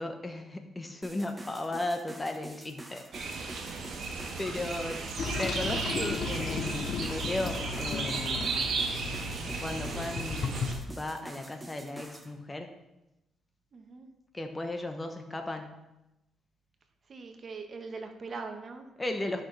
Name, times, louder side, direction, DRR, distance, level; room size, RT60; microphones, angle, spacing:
voice 1, 0.0-3.1 3.7-3.8 4.4-5.0 5.4-8.5 9.6-10.6 10.9-12.7 14.3-15.8 19.0-19.5, left 2 dB, 20° left, 5 dB, 1.1 m, -35 dB
sound 1, 1.0-12.3, right 1 dB, 15° right, 1.2 m, -47 dB
sound 2, 3.1-10.7, right 4 dB, 70° right, 1.5 m, -35 dB
Toilet flush, 5.2-10.8, left 4 dB, 50° left, 0.7 m, -35 dB
voice 2, 13.7-14.1 17.1-18.9, right 4 dB, 45° right, 5 dB, 1.2 m, -41 dB
13.5 x 6.1 x 3.4 m, 0.93 s
cardioid pair, 90°, 0 cm